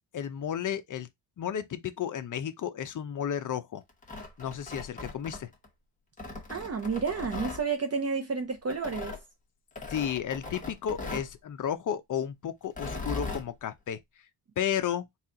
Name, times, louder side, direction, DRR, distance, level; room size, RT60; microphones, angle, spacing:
voice 1, 0.1-1.1 1.4-3.8 4.4-5.5 9.9-14.0 14.6-15.0, left 9 dB, 40° left, 0.6 m, -33 dB
Tearing, 3.9-5.7 6.2-7.6 8.7-9.2 9.8-11.3 12.6-13.5, left 3 dB, 15° left, 1.1 m, -38 dB
voice 2, 6.5-9.1, right 5 dB, 30° right, 0.6 m, -31 dB
4.2 x 2.4 x 3.7 m
cardioid pair, 130°, 48 cm